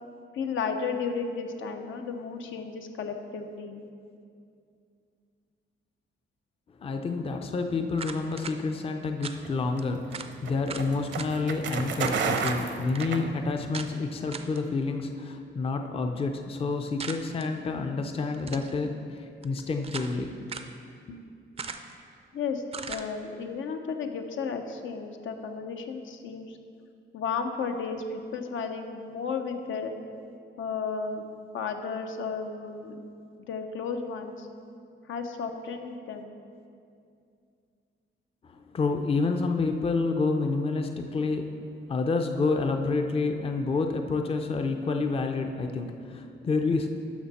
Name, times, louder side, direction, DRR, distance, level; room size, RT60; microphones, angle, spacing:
voice 1, 0.3-3.8 22.3-22.6 22.9-26.6 27.1-29.9 30.6-31.3 31.5-33.0 33.4-34.5 35.0-36.3, left 5 dB, 80° left, 5 dB, 0.8 m, -33 dB
voice 2, 6.8-20.3 21.1-21.2 38.4-41.6 41.9-46.9, left 3 dB, 30° left, 5 dB, 0.5 m, -29 dB
sound 1, 8.0-8.6 9.2-9.4 9.8-9.9 10.1-10.3 10.7-11.3 12.0-12.6 12.9-13.1 13.7-13.9 14.3-14.6 17.0-17.5 18.3-18.7 19.4-20.2 20.5-20.7 21.6-22.0 22.7-23.1, right 5 dB, 30° right, 0.4 m, -39 dB
sound 2, 9.4-13.8, right 5 dB, 70° right, 0.7 m, -32 dB
12.0 x 6.2 x 4.2 m, 2.4 s
wide cardioid pair, 160°, 20 cm